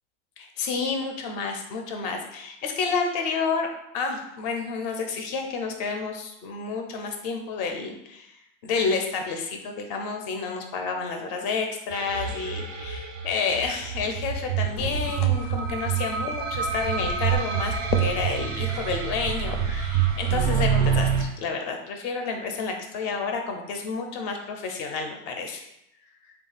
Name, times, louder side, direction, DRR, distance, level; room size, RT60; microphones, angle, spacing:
voice 1, 0.4-3.7 3.9-8.3 8.6-25.7, left 4 dB, 30° left, 3 dB, 0.4 m, -30 dB
sound 1, 11.9-21.2, right 8 dB, 35° right, 0.4 m, -27 dB
sound 2, 14.7-20.4, left 6 dB, 85° left, 0.6 m, -37 dB
3.6 x 2.3 x 3.9 m, 0.80 s
supercardioid pair, 155°, 36 cm